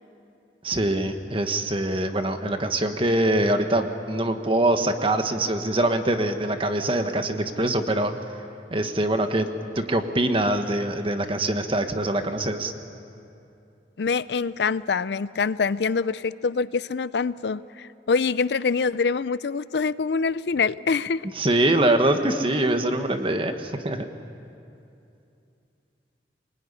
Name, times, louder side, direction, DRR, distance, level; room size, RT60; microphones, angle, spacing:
voice 1, 0.6-8.1 8.7-9.5 9.7-12.7 21.4-24.0, right 1 dB, 30° right, 7 dB, 1.4 m, -23 dB
voice 2, 14.0-21.3, left 5 dB, 70° left, 17 dB, 0.5 m, -25 dB
23.5 x 20.5 x 9.9 m, 2.7 s
head